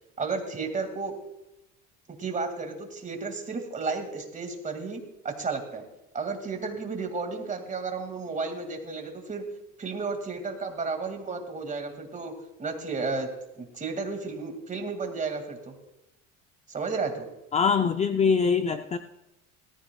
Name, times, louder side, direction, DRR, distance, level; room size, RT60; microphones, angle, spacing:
voice 1, 0.2-1.2 2.1-5.8 6.1-9.4 9.8-12.3 12.6-13.3 13.6-15.8 16.7-17.3, right 4 dB, 25° right, 5 dB, 2.1 m, -33 dB
voice 2, 17.5-19.0, left 6 dB, 20° left, 8 dB, 0.5 m, -23 dB
17.5 x 14.0 x 2.3 m, 0.91 s
cardioid pair, 120°, 32 cm